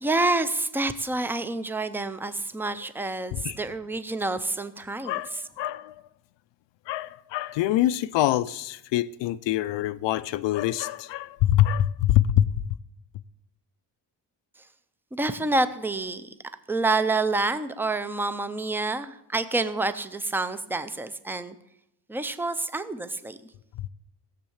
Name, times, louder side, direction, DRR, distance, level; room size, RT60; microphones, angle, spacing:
voice 1, 0.0-5.2 15.1-16.3 16.7-21.5 22.1-23.4, right 2 dB, 5° right, 0.4 m, -28 dB
voice 2, 5.0-6.0 6.9-12.5, left 13 dB, 80° left, 0.5 m, -25 dB
16.0 x 7.4 x 7.1 m
cardioid pair, 165°, 42 cm